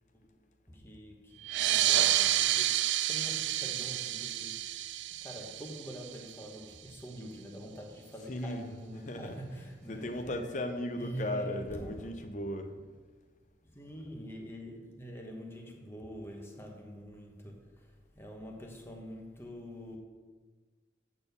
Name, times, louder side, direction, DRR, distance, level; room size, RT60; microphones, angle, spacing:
voice 1, 0.7-4.7 5.2-10.5 11.0-12.1 12.7-12.8 13.6-20.0, equal, 15° left, 1.1 m, -45 dB
sound 1, 1.4-6.6, right 13 dB, 75° right, 0.4 m, -30 dB
voice 2, 8.3-8.7 9.1-9.4 9.9-12.7, left 1 dB, 40° left, 0.6 m, -36 dB
8.8 x 4.2 x 6.8 m
head